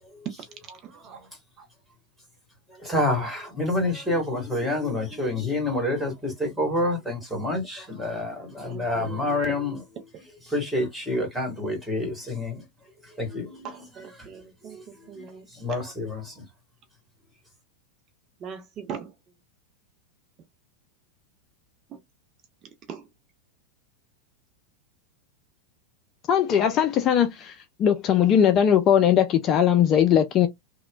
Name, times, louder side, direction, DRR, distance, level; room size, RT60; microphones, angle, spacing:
voice 1, 0.7-1.3 1.6-1.7 8.6-9.3 13.6-15.8 18.4-19.1 21.9-22.0 22.9-23.1, right 7 dB, 30° right, 0.5 m, -40 dB
voice 2, 2.7-9.8 10.4-12.6 13.0-16.4, left 1 dB, ahead, 1.4 m, -28 dB
voice 3, 26.3-30.5, left 9 dB, 30° left, 0.3 m, -20 dB
2.9 x 2.0 x 2.3 m
figure-of-eight pair, 90°, 0 cm